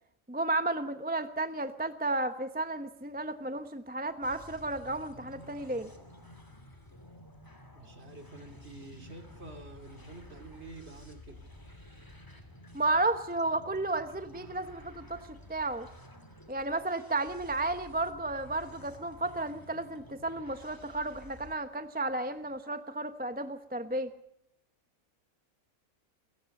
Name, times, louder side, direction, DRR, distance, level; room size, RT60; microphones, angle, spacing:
voice 1, 0.3-5.9 12.7-15.9 16.5-24.1, right 2 dB, 10° right, 9 dB, 0.9 m, -33 dB
sound 1, 4.2-21.6, left 1 dB, 15° left, 2.8 m, -52 dB
voice 2, 7.7-11.4, right 2 dB, 50° right, 6 dB, 3.0 m, -48 dB
28.5 x 15.0 x 6.6 m, 0.77 s
omnidirectional pair, 1.4 m